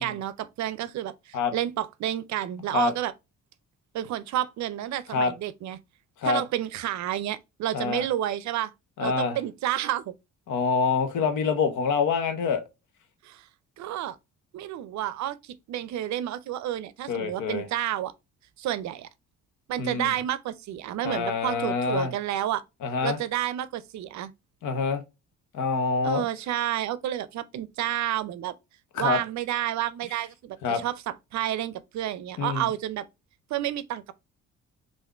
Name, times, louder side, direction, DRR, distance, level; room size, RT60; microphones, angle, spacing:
voice 1, 0.0-3.1 3.9-5.8 6.2-8.7 9.0-10.1 13.2-13.5 13.8-14.2 14.5-18.1 18.6-19.1 19.7-22.6 23.0-24.3 26.0-28.5 29.0-33.1 33.5-34.1, right 12 dB, 65° right, 0.5 m, -30 dB
voice 2, 7.7-8.0 9.0-9.4 10.5-12.6 17.1-17.7 19.8-20.1 21.0-22.1 22.8-23.2 24.6-25.0 25.5-26.2 28.9-29.2 30.6-30.8 32.4-32.6, left 5 dB, 80° left, 0.9 m, -26 dB
3.6 x 2.5 x 3.3 m
cardioid pair, 90°, 30 cm